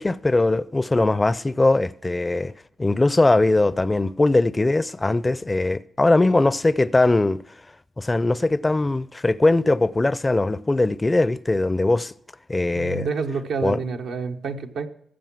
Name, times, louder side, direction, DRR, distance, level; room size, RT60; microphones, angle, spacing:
voice 1, 0.0-2.5 2.8-7.4 8.0-12.1 12.5-13.1 13.6-13.8, left 2 dB, 25° left, 0.5 m, -20 dB
voice 2, 12.7-14.9, right 5 dB, 80° right, 1.1 m, -28 dB
15.0 x 7.3 x 6.0 m
supercardioid pair, 50°, 0 cm